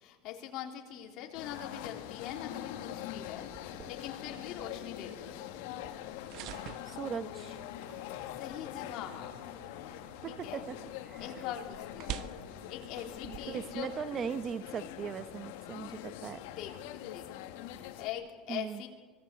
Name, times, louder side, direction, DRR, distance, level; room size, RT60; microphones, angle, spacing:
voice 1, 0.0-5.4 8.3-9.4 9.8-10.7 11.2-12.2 12.7-13.9 16.3-18.9, left 10 dB, 55° left, 3 dB, 3.4 m, -43 dB
sound 1, 1.3-18.1, left 12 dB, 80° left, 1.8 m, -43 dB
sound 2, 3.3-13.8, right 12 dB, 55° right, 1.0 m, -49 dB
voice 2, 6.8-7.6 10.2-10.8 11.1-11.2 13.2-16.4 18.5-18.8, right 7 dB, 30° right, 13 dB, 0.9 m, -39 dB
25.0 x 18.5 x 8.3 m, 1.4 s
cardioid pair, 150°, 0 cm